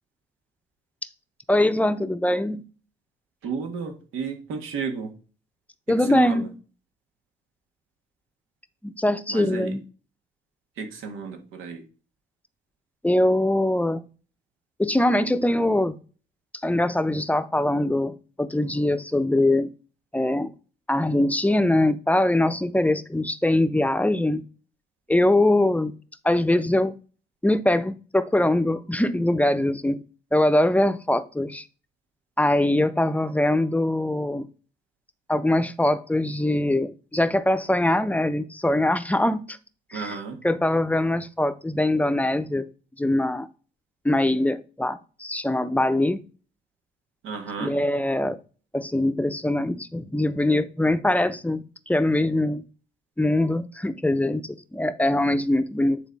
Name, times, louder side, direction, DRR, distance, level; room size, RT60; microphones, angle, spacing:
voice 1, 1.5-2.6 5.9-6.5 8.8-9.8 13.0-14.0 14.8-15.9 16.6-19.7 20.1-20.5 20.9-24.4 25.1-25.9 26.2-26.9 27.4-30.0 30.3-31.7 32.4-34.5 35.3-39.6 39.9-40.2 40.4-42.7 43.0-43.5 44.0-46.2 47.6-48.4 48.7-52.6 53.2-56.0, left 1 dB, 5° left, 0.6 m, -22 dB
voice 2, 3.4-5.1 5.9-6.5 9.3-9.8 10.8-11.8 39.9-40.4 47.2-47.7, right 5 dB, 90° right, 1.6 m, -32 dB
9.3 x 4.0 x 4.0 m
cardioid pair, 90°, 20 cm